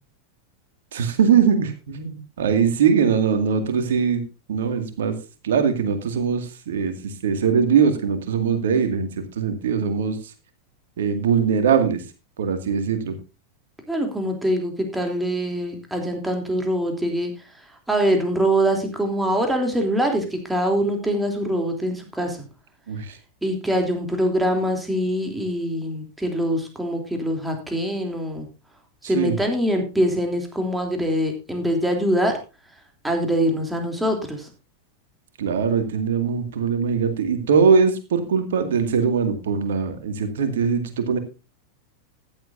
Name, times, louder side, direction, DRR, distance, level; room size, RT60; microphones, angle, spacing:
voice 1, 0.9-4.2 4.5-5.2 5.4-9.1 9.4-10.2 11.0-12.0 12.4-13.2 22.9-23.2 29.0-29.4 35.4-41.2, right 6 dB, 60° right, 8 dB, 2.2 m, -21 dB
voice 2, 13.9-17.3 17.9-22.4 23.4-28.5 29.0-32.4 33.0-34.5, equal, 5° right, 3 dB, 3.2 m, -23 dB
15.0 x 11.0 x 2.7 m, 0.29 s
figure-of-eight pair, 90°, 0 cm